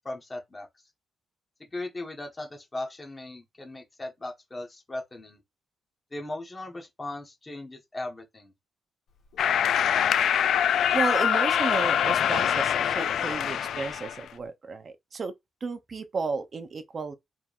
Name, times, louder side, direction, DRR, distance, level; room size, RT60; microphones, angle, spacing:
voice 1, 0.0-0.7 1.7-5.4 6.1-8.5, left 2 dB, 20° left, 1.2 m, -38 dB
Growling, 9.1-14.4, left 5 dB, 90° left, 1.3 m, -46 dB
sound 1, 9.4-14.2, left 9 dB, 70° left, 0.3 m, -24 dB
voice 2, 10.9-15.3 15.6-17.1, right 4 dB, 35° right, 0.7 m, -33 dB
4.5 x 3.5 x 2.5 m
cardioid pair, 145°, 0 cm